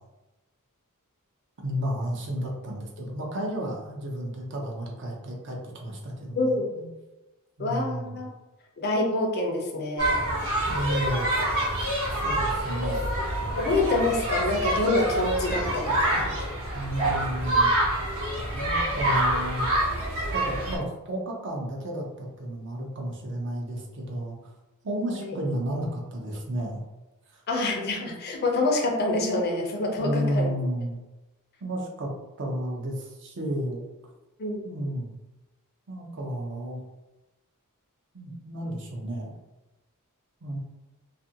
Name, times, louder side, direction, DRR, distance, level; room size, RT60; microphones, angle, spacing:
voice 1, 1.6-6.9 7.6-8.2 10.7-11.4 12.2-13.1 16.7-17.7 18.5-19.7 20.3-24.5 24.8-26.8 27.3-27.4 30.0-31.0 31.6-32.1 32.4-33.8 34.6-35.2 35.9-36.8 38.1-39.3 40.4-40.6, equal, 55° right, -1 dB, 0.6 m, -32 dB
voice 2, 6.3-6.7 7.6-8.3 8.8-10.2 13.6-16.1 25.1-25.4 27.5-30.5 34.4-34.8, left 2 dB, 45° left, 2 dB, 0.5 m, -26 dB
sound 1, 10.0-20.8, right 1 dB, 70° right, 1.0 m, -26 dB
2.5 x 2.5 x 2.7 m, 1.0 s
head